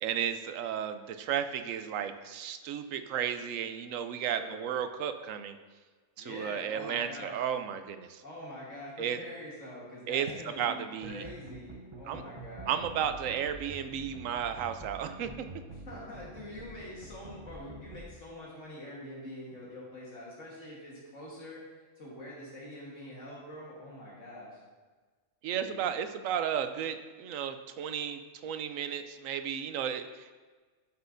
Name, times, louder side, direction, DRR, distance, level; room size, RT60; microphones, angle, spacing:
voice 1, 0.0-5.6 6.2-8.2 9.0-9.2 10.1-11.3 12.1-12.2 12.7-15.5 25.4-30.3, right 8 dB, 85° right, 9 dB, 1.0 m, -34 dB
voice 2, 4.3-4.6 6.2-7.4 8.2-12.8 15.7-21.7 22.0-24.6 25.5-25.8, left 1 dB, 70° left, -5 dB, 1.9 m, -45 dB
sound 1, 11.0-18.0, right 1 dB, 25° right, 0.7 m, -47 dB
12.0 x 6.2 x 2.6 m, 1.4 s
omnidirectional pair, 1.3 m